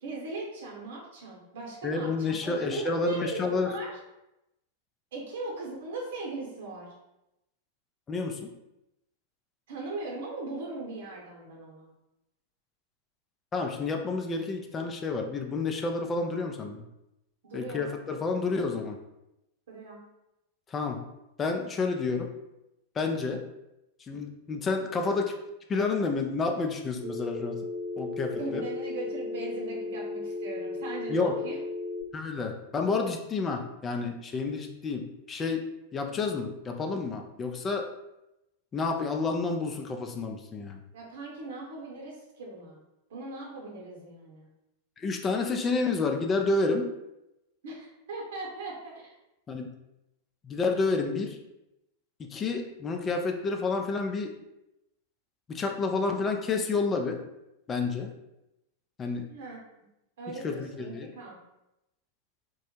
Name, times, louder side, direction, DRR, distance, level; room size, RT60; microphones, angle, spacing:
voice 1, 0.0-3.9 5.1-6.9 9.7-11.9 17.4-17.9 19.7-20.0 28.4-31.6 40.9-42.8 43.1-44.5 47.6-49.1 59.3-59.6 60.2-61.4, right 2 dB, 65° right, -2 dB, 0.8 m, -39 dB
voice 2, 1.8-3.7 8.1-8.5 13.5-16.8 17.5-19.0 20.7-21.0 21.4-22.3 23.0-23.4 24.0-25.3 25.7-27.6 28.0-28.7 31.1-31.3 32.1-35.6 35.9-37.9 38.7-40.8 45.0-46.9 49.5-49.7 50.4-51.4 52.2-54.3 55.5-57.2 57.7-58.1 59.0-59.3 60.4-61.1, left 4 dB, 25° left, 3 dB, 0.3 m, -30 dB
Telephone, 27.0-32.0, left 3 dB, 85° right, 0.4 m, -35 dB
2.2 x 2.0 x 3.0 m, 0.91 s
figure-of-eight pair, 95°, 0 cm